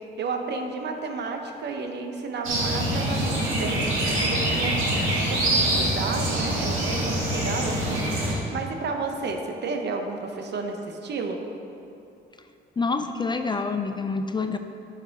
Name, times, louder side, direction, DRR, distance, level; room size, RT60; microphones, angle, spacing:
voice 1, 0.2-4.7 5.3-11.4, right 4 dB, 60° right, 4 dB, 0.9 m, -32 dB
sound 1, 2.4-8.3, right 1 dB, 90° right, 1.8 m, -25 dB
voice 2, 12.8-14.6, left 4 dB, 25° left, 7 dB, 0.4 m, -27 dB
11.0 x 4.9 x 3.6 m, 2.7 s
cardioid pair, 90°, 20 cm